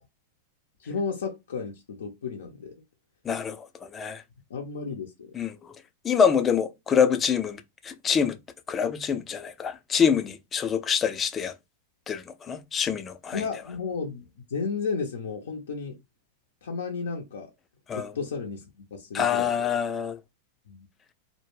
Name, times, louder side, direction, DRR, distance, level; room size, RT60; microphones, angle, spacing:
voice 1, 0.8-2.8 4.5-5.3 13.3-16.0 16.6-17.5 17.9-18.6 18.9-19.7 20.7-20.9, left 5 dB, 80° left, 0.5 m, -33 dB
voice 2, 3.2-4.2 5.3-5.6 6.0-8.4 8.7-11.5 12.1-13.4 17.9-18.1 19.1-20.2, left 7 dB, 25° left, 0.4 m, -26 dB
2.1 x 2.1 x 3.1 m
hypercardioid pair, 115°, 0 cm